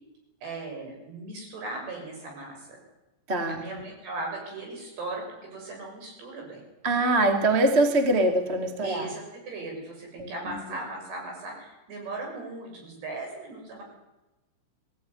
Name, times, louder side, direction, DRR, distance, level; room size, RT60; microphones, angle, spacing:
voice 1, 0.4-2.7 3.5-6.6 8.8-13.8, right 2 dB, 55° right, 1 dB, 8.8 m, -38 dB
voice 2, 3.3-3.6 6.8-9.1 10.2-10.6, right 2 dB, 35° right, 5 dB, 1.0 m, -23 dB
21.0 x 17.0 x 9.8 m, 1.0 s
omnidirectional pair, 5.9 m